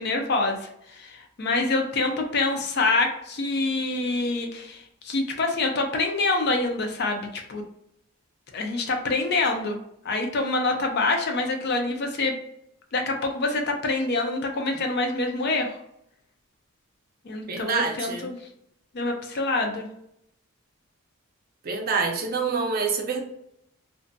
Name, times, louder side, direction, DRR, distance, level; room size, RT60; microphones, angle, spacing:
voice 1, 0.0-7.6 8.5-9.8 10.0-12.4 12.9-15.7 17.2-18.5 18.9-19.9, left 3 dB, 50° left, 4 dB, 0.4 m, -26 dB
voice 2, 17.5-18.3 21.6-23.2, right 5 dB, 40° right, 3 dB, 0.5 m, -26 dB
2.5 x 2.5 x 2.2 m, 0.75 s
head